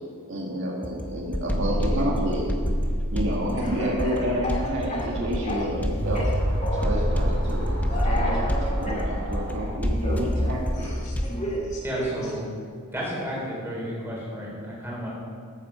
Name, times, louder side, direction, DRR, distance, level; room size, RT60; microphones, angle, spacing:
voice 1, 0.3-2.5 3.1-6.3 6.7-7.8 8.0-10.9, right 1 dB, 55° right, -3 dB, 1.9 m, -29 dB
sound 1, 0.8-11.5, equal, 5° left, 0.8 m, -28 dB
Speech / Cough, 3.6-5.8 6.1-7.0 7.9-9.1 10.0-12.3, equal, 30° left, 2.1 m, -32 dB
sound 2, 5.4-11.0, equal, 90° right, 2.9 m, -30 dB
voice 2, 11.8-12.4 12.9-15.1, equal, 10° right, -5 dB, 3.7 m, -32 dB
13.5 x 8.8 x 5.5 m, 2.2 s
head